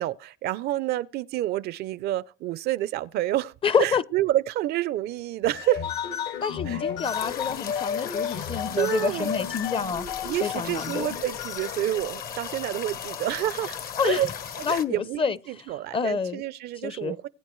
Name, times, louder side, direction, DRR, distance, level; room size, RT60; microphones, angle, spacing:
voice 1, 0.0-3.5 3.8-5.8 6.7-6.8 8.8-9.3 10.2-13.8 14.0-14.3 14.7-17.3, right 14 dB, 70° right, 0.5 m, -28 dB
voice 2, 3.6-4.0 6.4-10.1 10.4-11.1 14.0-14.2 14.6-15.4 15.9-16.4 16.8-17.2, left 6 dB, 30° left, 0.6 m, -27 dB
sound 1, 5.4-13.7, left 7 dB, 80° left, 1.9 m, -34 dB
sound 2, 7.0-14.8, left 8 dB, 60° left, 1.1 m, -37 dB
20.5 x 9.2 x 3.1 m
cardioid pair, 110°, 17 cm